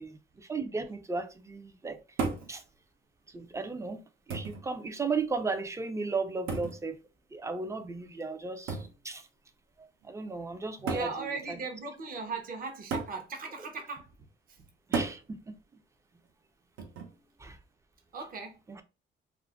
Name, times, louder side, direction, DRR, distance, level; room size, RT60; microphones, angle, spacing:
voice 1, 0.0-2.0 2.5-2.6 3.3-4.0 4.3-7.0 7.3-9.3 9.8-11.6 14.9-15.5 17.4-17.6 18.7-18.8, right 4 dB, 15° right, 0.4 m, -35 dB
sound 1, 2.2-2.5 3.6-3.7 4.3-4.7 6.5-6.8 8.7-9.0 10.0-10.1 10.9-11.2 12.9-13.2 14.9-15.2 16.8-17.2, right 4 dB, 80° right, 0.7 m, -33 dB
voice 2, 10.8-14.1 18.1-18.5, right 4 dB, 45° right, 0.7 m, -37 dB
2.4 x 2.1 x 3.4 m
cardioid pair, 90°, 20 cm